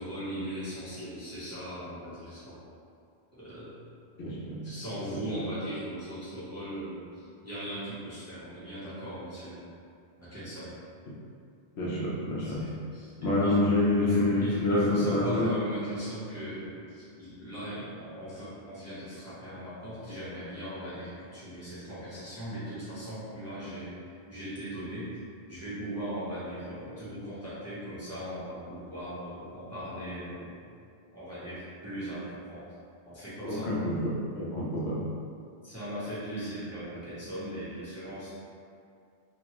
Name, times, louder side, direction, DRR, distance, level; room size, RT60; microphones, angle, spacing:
voice 1, 0.0-2.6 3.4-3.8 4.6-9.6 10.2-10.7 12.4-13.6 14.0-25.2 25.5-30.7 31.1-32.6 33.1-33.7 35.6-38.3, equal, 15° right, -13 dB, 0.6 m, -39 dB
voice 2, 4.2-4.7 5.1-5.2 11.1-11.2 11.8-12.8 13.2-15.6 33.4-35.1, left 1 dB, 70° left, -6 dB, 0.9 m, -27 dB
2.9 x 2.1 x 2.8 m, 2.4 s
omnidirectional pair, 1.2 m